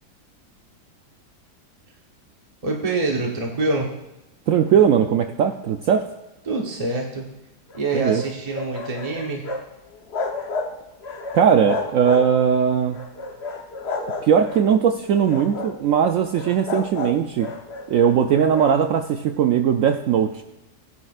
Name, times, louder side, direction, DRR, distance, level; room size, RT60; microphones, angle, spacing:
voice 1, 2.6-3.9 6.4-7.2 7.7-9.4, right 2 dB, 25° right, -1 dB, 0.9 m, -25 dB
voice 2, 4.5-6.1 7.9-8.2 11.3-13.0 14.2-17.5 17.9-20.4, right 8 dB, 75° right, 6 dB, 0.7 m, -19 dB
sound 1, 7.7-9.7 9.9-10.7 11.0-12.5 12.9-14.6 15.2-15.8 16.3-18.8, left 3 dB, 45° left, 1.0 m, -31 dB
17.0 x 9.9 x 2.4 m, 0.96 s
omnidirectional pair, 1.9 m